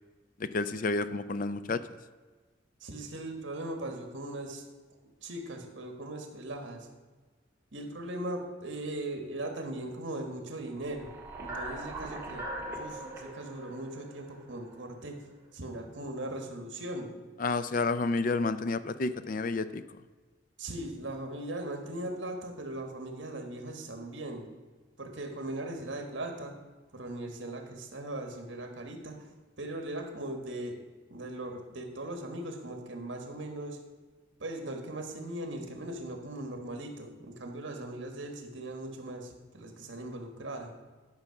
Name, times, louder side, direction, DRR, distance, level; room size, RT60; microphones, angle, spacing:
voice 1, 0.4-1.8 17.4-19.8, left 3 dB, 45° left, 13 dB, 0.4 m, -30 dB
voice 2, 2.8-4.6 5.2-6.9 7.7-11.1 11.4-15.2 15.5-17.1 20.6-24.5 25.0-26.6 26.9-29.3 29.6-30.8 31.1-33.8 34.4-40.7, right 1 dB, 70° right, 4 dB, 1.6 m, -39 dB
sound 1, 10.7-15.0, right 1 dB, 10° right, 1.6 m, -41 dB
11.5 x 5.8 x 5.8 m, 1.4 s
head